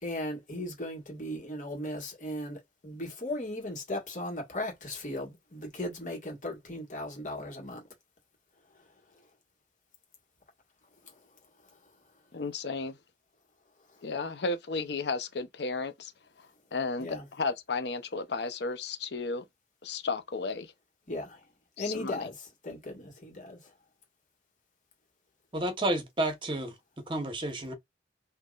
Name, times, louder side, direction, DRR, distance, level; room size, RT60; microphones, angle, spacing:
voice 1, 0.0-7.8 11.0-11.1 17.0-17.3 21.1-21.4 21.8-23.6, left 1 dB, 45° left, 1.7 m, -37 dB
voice 2, 12.3-13.0 14.0-16.1 16.7-19.4 19.8-20.7 21.8-22.3, left 3 dB, 70° left, 0.7 m, -33 dB
voice 3, 25.5-26.7 27.1-27.7, right 1 dB, 30° right, 1.1 m, -30 dB
3.7 x 2.8 x 2.5 m
head